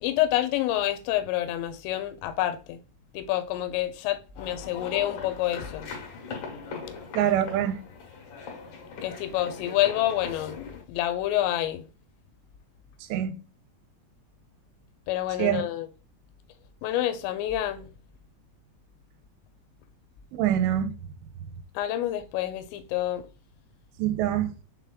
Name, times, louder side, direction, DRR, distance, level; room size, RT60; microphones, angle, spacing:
voice 1, 0.0-2.8 3.1-5.9 9.0-11.9 15.1-15.9 16.8-17.9 21.8-23.3, left 13 dB, 85° left, 2.8 m, -28 dB
sound 1, 4.4-10.8, left 5 dB, 60° left, 2.1 m, -40 dB
voice 2, 7.1-7.8 13.1-13.3 15.4-15.6 20.3-20.9 24.0-24.5, right 11 dB, 85° right, 2.8 m, -24 dB
6.2 x 3.5 x 2.3 m
omnidirectional pair, 5.1 m